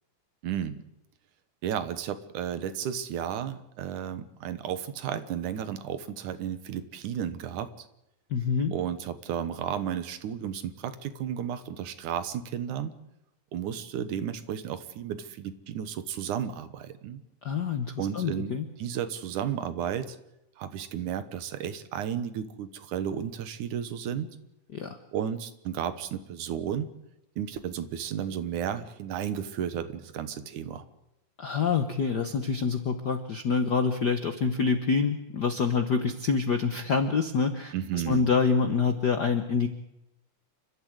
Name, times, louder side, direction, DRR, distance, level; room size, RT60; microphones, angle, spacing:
voice 1, 0.4-0.8 1.6-7.7 8.7-12.9 13.5-17.2 18.0-20.2 20.6-24.3 25.1-26.9 27.4-30.8 37.7-38.3, right 9 dB, 80° right, 12 dB, 2.7 m, -33 dB
voice 2, 8.3-8.7 17.4-18.6 24.7-25.0 31.4-39.7, left 5 dB, 65° left, 7 dB, 1.0 m, -26 dB
29.5 x 12.5 x 8.0 m, 0.87 s
omnidirectional pair, 3.5 m